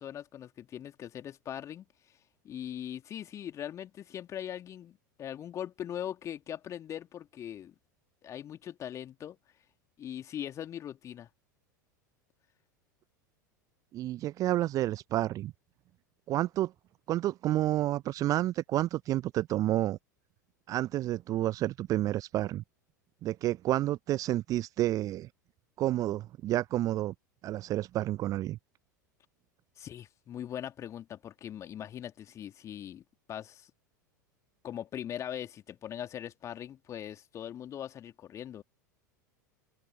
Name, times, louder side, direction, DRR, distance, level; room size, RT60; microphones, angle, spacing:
voice 1, 0.0-1.9 2.4-7.7 8.2-9.4 10.0-11.3 29.8-33.0 33.3-33.7 34.6-38.6, left 10 dB, 30° left, 2.5 m, -40 dB
voice 2, 13.9-15.5 16.3-16.7 17.1-20.0 20.7-22.6 23.2-25.3 25.8-27.1 27.4-28.6, right 14 dB, 35° right, 0.8 m, -30 dB
open air
figure-of-eight pair, 80°, 10 cm